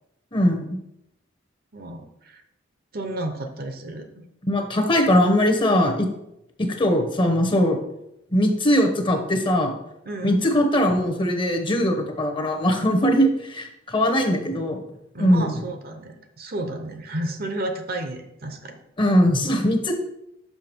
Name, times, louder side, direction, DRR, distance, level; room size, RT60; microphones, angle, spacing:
voice 1, 0.3-0.8 4.4-6.1 6.6-7.8 8.3-9.7 10.2-14.8 15.2-15.5 19.0-19.9, equal, 25° left, 4 dB, 0.9 m, -20 dB
voice 2, 1.7-2.4 2.9-4.2 10.0-10.5 15.1-18.8, right 1 dB, 50° right, 6 dB, 0.8 m, -32 dB
5.8 x 5.7 x 4.5 m, 0.83 s
head